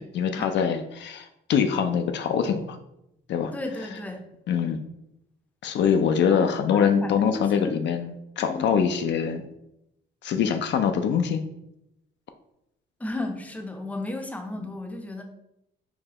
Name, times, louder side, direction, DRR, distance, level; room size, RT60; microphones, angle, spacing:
voice 1, 0.0-2.8 3.3-3.5 4.5-4.8 5.6-9.4 10.2-11.4 14.6-14.7, left 7 dB, 65° left, 7 dB, 0.4 m, -24 dB
voice 2, 3.5-4.3 6.3-6.4 6.7-7.9 8.4-8.8 13.0-15.2, left 2 dB, 5° left, 4 dB, 0.5 m, -34 dB
4.8 x 2.2 x 2.8 m, 0.82 s
cardioid pair, 90°, 20 cm